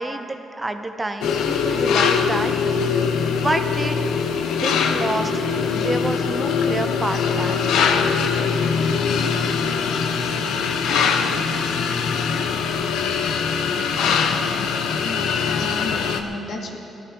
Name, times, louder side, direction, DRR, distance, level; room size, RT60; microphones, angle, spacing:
voice 1, 0.0-4.2 4.6-5.4 5.7-7.6, right 2 dB, 20° right, 7 dB, 1.0 m, -29 dB
sound 1, 1.2-16.2, left 6 dB, 85° left, 0.9 m, -22 dB
voice 2, 14.9-16.8, left 2 dB, 65° left, 1 dB, 2.2 m, -33 dB
18.5 x 13.0 x 4.7 m, 2.7 s
cardioid pair, 80°, 0 cm